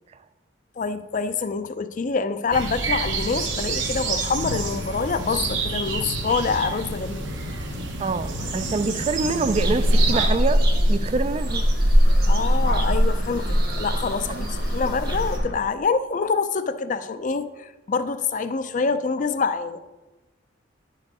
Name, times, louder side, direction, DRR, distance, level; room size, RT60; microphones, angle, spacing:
voice 1, 0.8-7.6 12.3-19.8, left 4 dB, 40° left, 11 dB, 0.4 m, -26 dB
sound 1, 2.5-10.3, right 3 dB, 70° right, 1.1 m, -28 dB
voice 2, 8.0-10.6 10.9-11.7 14.3-14.5, right 3 dB, 30° right, 13 dB, 0.3 m, -25 dB
sound 2, 8.4-15.6, left 2 dB, 70° left, 1.3 m, -41 dB
sound 3, 9.5-15.4, equal, 50° right, 1.2 m, -21 dB
10.5 x 4.7 x 4.8 m, 1.2 s
head